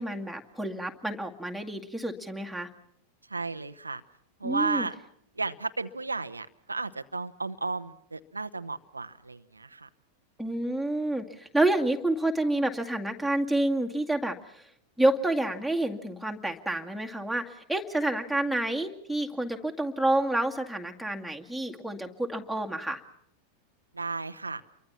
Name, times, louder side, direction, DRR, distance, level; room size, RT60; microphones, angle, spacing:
voice 1, 0.0-2.7 4.4-4.9 10.4-14.6 15.0-23.0, right 1 dB, ahead, 6 dB, 2.2 m, -29 dB
voice 2, 3.3-4.0 4.4-4.9 5.4-9.9 23.9-24.6, right 3 dB, 80° right, 9 dB, 0.9 m, -33 dB
29.0 x 23.5 x 5.9 m, 0.69 s
figure-of-eight pair, 90°, 0 cm